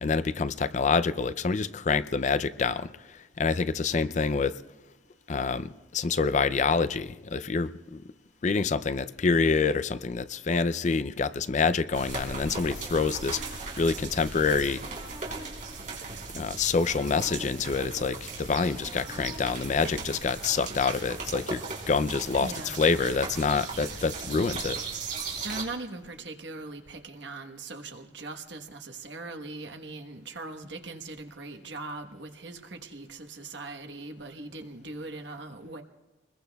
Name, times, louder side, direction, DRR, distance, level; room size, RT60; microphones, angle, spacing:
voice 1, 0.0-2.9 3.4-4.6 5.3-8.0 8.4-13.4 13.8-14.8 16.3-22.5 22.8-24.8, left 4 dB, 40° left, 14 dB, 0.4 m, -27 dB
sound 1, 11.9-25.6, right 4 dB, 45° right, 3.8 m, -38 dB
sound 2, 12.3-20.2, equal, 30° right, 4.8 m, -49 dB
voice 2, 22.4-22.8 25.4-35.8, right 2 dB, 75° right, 5 dB, 1.2 m, -40 dB
27.0 x 21.0 x 2.3 m, 1.1 s
head